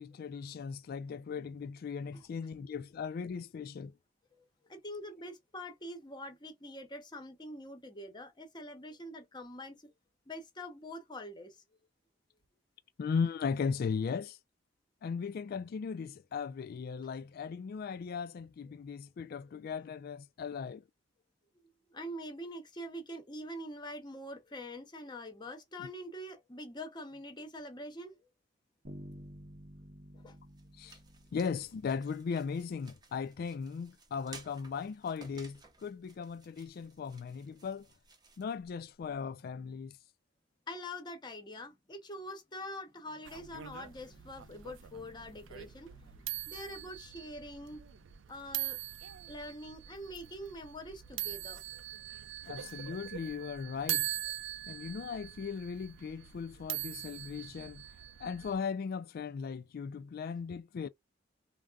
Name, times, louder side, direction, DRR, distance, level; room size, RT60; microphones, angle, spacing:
voice 1, 0.0-3.9 13.0-14.4 15.0-20.8 25.8-25.9 30.8-31.0 31.3-37.9 38.4-40.0 52.5-54.1 54.7-57.8 58.2-60.9, left 6 dB, 55° left, 0.3 m, -37 dB
voice 2, 4.7-9.8 10.3-11.6 21.9-28.2 30.1-30.4 40.7-47.8 48.3-48.8 49.3-51.6, left 1 dB, 25° left, 0.8 m, -44 dB
Bass guitar, 28.8-32.6, equal, 50° right, 0.9 m, -51 dB
sound 1, 30.2-39.2, right 4 dB, 20° right, 0.7 m, -57 dB
sound 2, 43.2-58.6, right 13 dB, 85° right, 0.4 m, -42 dB
3.4 x 2.1 x 2.4 m
head